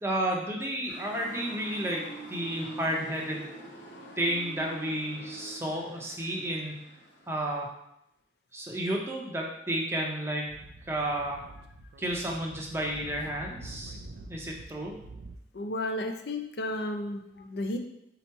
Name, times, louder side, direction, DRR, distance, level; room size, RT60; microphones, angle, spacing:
voice 1, 0.0-2.0 2.3-3.5 4.2-6.9 7.3-7.7 8.5-10.6 10.9-11.5 12.0-14.0 14.3-14.9, right 1 dB, 15° right, -1 dB, 0.6 m, -32 dB
Motor vehicle (road) / Siren, 0.9-7.6, right 1 dB, 85° left, 1.0 m, -45 dB
Speech / Wind, 10.5-15.4, right 2 dB, 65° right, 0.4 m, -47 dB
voice 2, 15.5-17.8, left 1 dB, 65° left, 5 dB, 0.4 m, -33 dB
4.0 x 2.9 x 4.5 m, 0.80 s
head